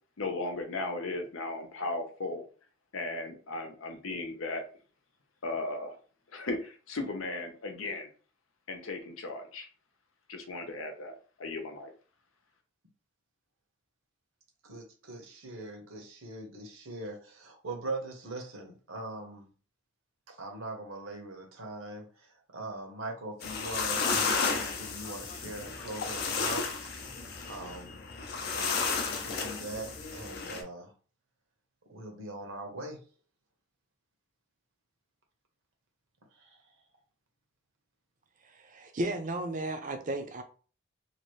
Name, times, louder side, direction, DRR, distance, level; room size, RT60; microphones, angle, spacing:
voice 1, 0.2-2.5 2.9-4.6 5.4-6.0 6.3-8.1 8.7-9.7 10.3-11.9, left 2 dB, 90° left, 0.8 m, -36 dB
voice 2, 14.6-19.5 20.3-24.0 24.4-26.9 27.5-28.0 28.4-30.9 31.9-33.0 36.4-36.6, right 2 dB, 85° right, 1.1 m, -41 dB
sound 1, 23.4-30.6, left 5 dB, 50° left, 0.6 m, -33 dB
voice 3, 38.4-40.4, right 1 dB, 40° right, 0.5 m, -34 dB
2.9 x 2.6 x 3.1 m
head